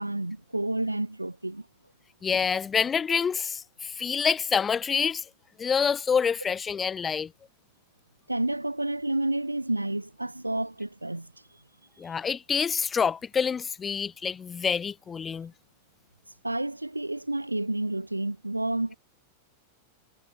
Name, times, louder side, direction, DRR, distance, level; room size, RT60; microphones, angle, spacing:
voice 1, 0.0-1.7 8.3-11.3 16.4-19.0, right 1 dB, 85° right, 1.3 m, -30 dB
voice 2, 2.2-5.3 5.6-7.3 12.0-15.5, left 6 dB, 20° left, 1.3 m, -27 dB
figure-of-eight pair, 90°, 0 cm